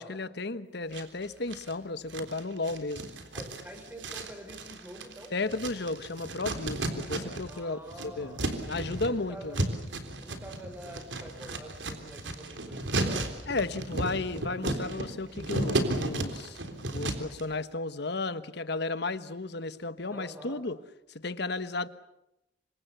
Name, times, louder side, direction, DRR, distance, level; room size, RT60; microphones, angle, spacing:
voice 1, 0.0-3.1 5.3-9.6 13.5-16.6 16.9-20.8 21.1-21.9, left 3 dB, 65° left, 1.2 m, -34 dB
sound 1, 0.9-1.7 2.1-7.6 7.8-17.4, right 1 dB, 80° right, 3.6 m, -34 dB
voice 2, 3.3-5.3 7.5-8.4 8.9-9.6 10.2-13.4 20.1-20.6, equal, 10° right, 5.8 m, -46 dB
27.0 x 25.5 x 6.9 m
head